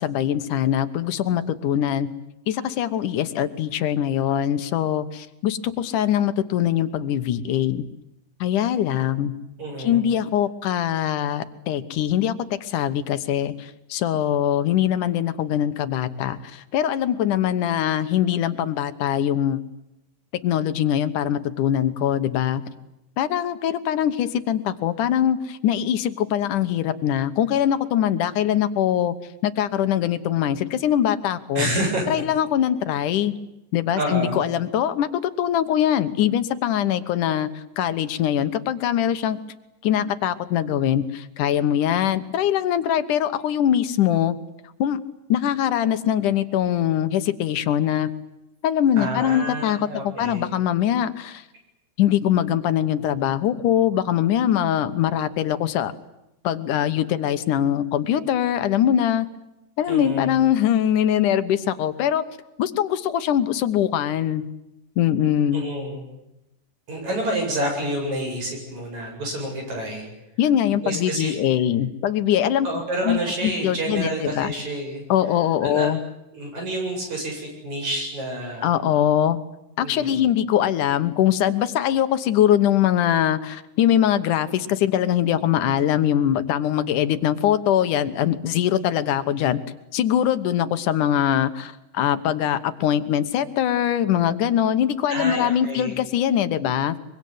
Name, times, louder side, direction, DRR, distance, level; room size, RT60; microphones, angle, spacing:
voice 1, 0.0-2.1 2.5-7.8 8.4-9.3 9.8-12.3 12.6-19.6 20.4-22.6 23.2-29.2 29.4-31.7 32.1-33.3 33.7-35.1 35.4-39.4 39.8-44.3 44.8-45.0 45.3-48.1 48.6-51.4 52.0-55.9 56.4-59.3 59.8-62.2 62.6-64.4 65.0-65.6 70.4-72.7 73.1-74.5 75.1-76.0 78.6-79.4 79.8-89.6 89.9-97.0, left 10 dB, 80° left, 12 dB, 2.7 m, -22 dB
voice 2, 9.6-10.0 31.6-32.2 33.9-34.4 48.9-50.5 59.9-60.4 65.5-66.1 66.9-70.1 70.7-71.4 72.6-75.1 75.6-75.9 76.3-78.7 79.8-80.2 95.1-96.0, right 1 dB, 60° right, 1 dB, 9.4 m, -28 dB
24.0 x 23.5 x 9.4 m, 0.89 s
omnidirectional pair, 3.6 m